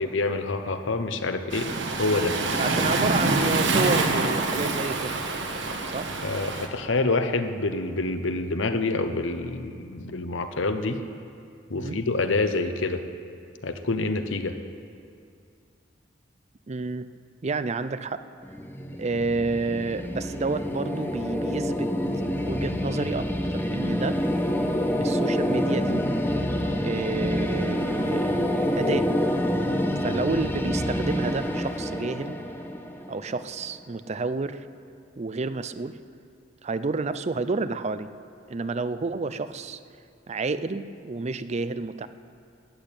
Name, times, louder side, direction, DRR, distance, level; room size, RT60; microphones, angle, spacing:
voice 1, 0.0-1.7 2.0-2.4 6.2-11.0 11.7-13.0 13.6-14.5, left 3 dB, 80° left, 8 dB, 0.9 m, -27 dB
Waves surf, 1.5-6.7, right 3 dB, 70° right, 1.3 m, -26 dB
voice 2, 2.6-5.1 5.9-6.1 11.7-12.0 16.7-17.1 17.4-18.2 19.0-21.9 22.4-23.3 23.5-24.2 25.0-26.0 26.8-28.4 28.8-29.1 30.0-32.4 33.1-34.6 35.2-36.0 36.6-38.1 38.5-39.8 40.3-42.1, right 3 dB, 35° right, 12 dB, 0.5 m, -29 dB
sound 1, 18.4-33.5, equal, 10° left, 1.0 m, -27 dB
13.0 x 8.8 x 9.0 m, 2.4 s
head